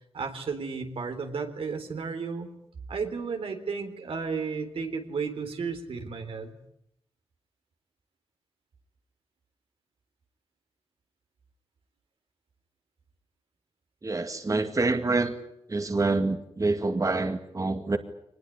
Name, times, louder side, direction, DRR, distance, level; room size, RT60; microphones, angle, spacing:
voice 1, 0.1-2.5 2.9-6.6, right 5 dB, 90° right, 5 dB, 3.7 m, -33 dB
voice 2, 14.0-15.3 15.7-18.0, right 3 dB, 35° right, 7 dB, 2.1 m, -26 dB
24.0 x 20.0 x 9.8 m, 0.78 s
cardioid pair, 70°, 9 cm